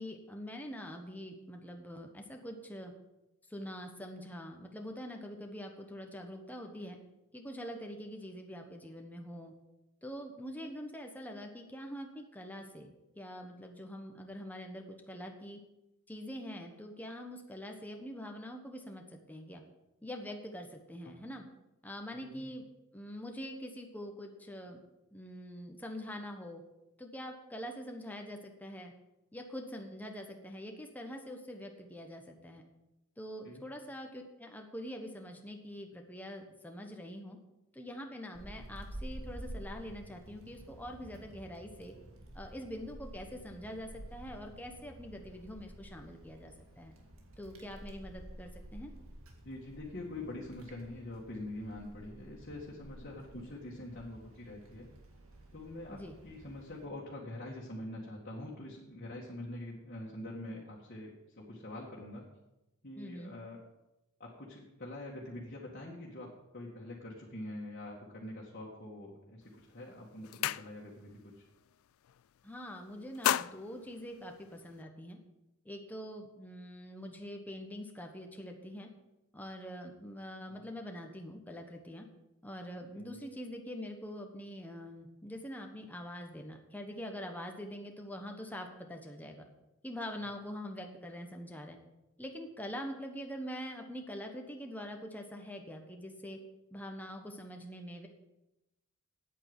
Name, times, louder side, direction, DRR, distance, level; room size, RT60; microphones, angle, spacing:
voice 1, 0.0-2.9 3.5-7.0 7.3-9.5 10.0-15.6 16.1-19.6 20.0-21.4 21.8-22.7 22.9-24.8 25.1-26.6 27.0-28.9 29.3-32.6 33.2-37.4 37.7-41.9 42.3-46.9 47.4-48.9 55.9-56.1 63.0-63.3 72.4-75.2 75.6-78.9 79.3-82.1 82.4-89.5 89.8-91.8 92.2-96.4 96.7-98.1, equal, 10° left, 3 dB, 1.3 m, -44 dB
voice 2, 22.1-22.5 33.4-33.6 49.4-54.9 55.5-62.2 62.8-63.6 64.2-71.4 80.5-80.6 83.0-83.2, left 1 dB, 45° left, -4 dB, 2.1 m, -45 dB
Wind, 38.3-56.9, right 1 dB, 80° right, 2.2 m, -50 dB
sound 1, 69.4-69.6 70.0-71.1 71.5-71.7 72.0-72.6 72.9-74.8, left 11 dB, 75° left, 0.3 m, -35 dB
9.0 x 8.7 x 8.1 m, 0.94 s
head